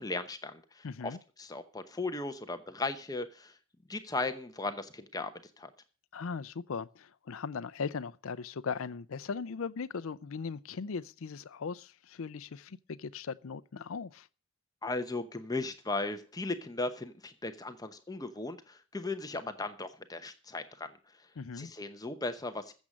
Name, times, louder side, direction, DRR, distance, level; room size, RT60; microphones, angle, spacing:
voice 1, 0.0-3.6 3.9-5.3 5.6-5.7 14.8-20.9 21.6-22.7, left 2 dB, 15° left, 0.9 m, -37 dB
voice 2, 0.8-1.2 6.1-14.3 21.4-21.7, left 5 dB, 65° left, 0.5 m, -38 dB
14.5 x 7.3 x 6.3 m
head